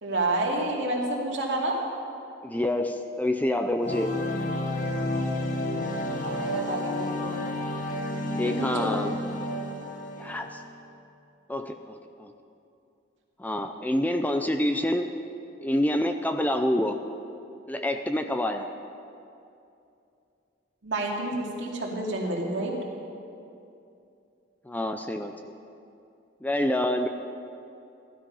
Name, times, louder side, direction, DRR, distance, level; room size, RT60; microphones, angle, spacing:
voice 1, 0.0-1.8 6.2-7.4 8.5-8.9 20.8-22.7, right 2 dB, 65° right, -2 dB, 2.5 m, -29 dB
voice 2, 2.4-4.2 8.4-9.2 10.2-10.6 11.5-12.3 13.4-15.1 15.6-17.0 17.7-18.7 24.7-25.3 26.4-27.1, left 1 dB, 10° left, 6 dB, 0.5 m, -27 dB
sound 1, 3.8-10.7, left 1 dB, 45° left, 1.3 m, -31 dB
16.0 x 12.5 x 5.5 m, 2.6 s
head